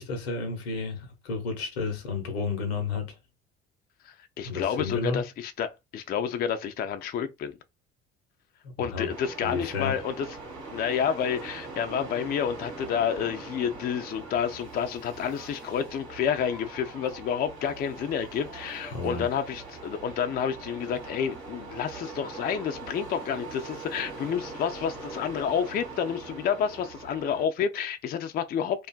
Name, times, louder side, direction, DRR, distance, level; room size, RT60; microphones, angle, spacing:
voice 1, 0.0-3.2 4.4-5.2 8.6-9.1 9.4-10.0 18.9-19.3, left 4 dB, 75° left, 0.7 m, -32 dB
voice 2, 4.0-7.5 8.8-10.3 10.7-28.9, left 8 dB, 30° left, 0.4 m, -29 dB
sound 1, 9.1-27.4, right 3 dB, 85° right, 0.8 m, -42 dB
2.4 x 2.3 x 2.2 m
figure-of-eight pair, 50°, 32 cm